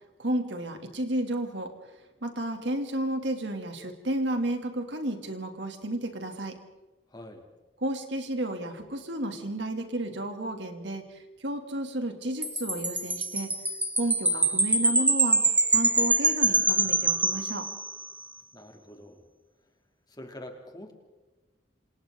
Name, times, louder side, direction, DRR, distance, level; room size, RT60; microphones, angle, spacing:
voice 1, 0.2-1.7 2.2-6.6 7.8-13.5 14.0-15.4 15.7-17.7, right 1 dB, 85° right, 5 dB, 3.1 m, -32 dB
voice 2, 7.1-7.5 18.5-19.3 20.1-20.9, left 1 dB, 25° left, 3 dB, 3.2 m, -45 dB
Wind chime, 12.4-18.1, right 2 dB, 10° right, 1.1 m, -25 dB
28.0 x 27.0 x 4.0 m, 1.1 s
head